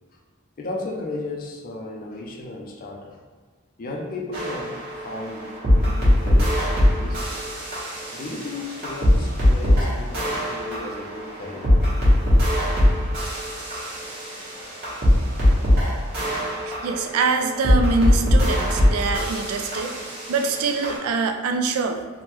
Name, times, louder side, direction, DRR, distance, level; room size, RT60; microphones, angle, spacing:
voice 1, 0.6-3.2 3.8-4.8 5.0-7.5 8.1-12.1, left 2 dB, 40° left, 0 dB, 0.4 m, -35 dB
sound 1, 4.3-20.9, left 1 dB, 50° right, 1.0 m, -21 dB
voice 2, 16.7-19.9 20.3-22.0, right 4 dB, 80° right, 5 dB, 0.3 m, -24 dB
3.2 x 2.1 x 3.0 m, 1.5 s
head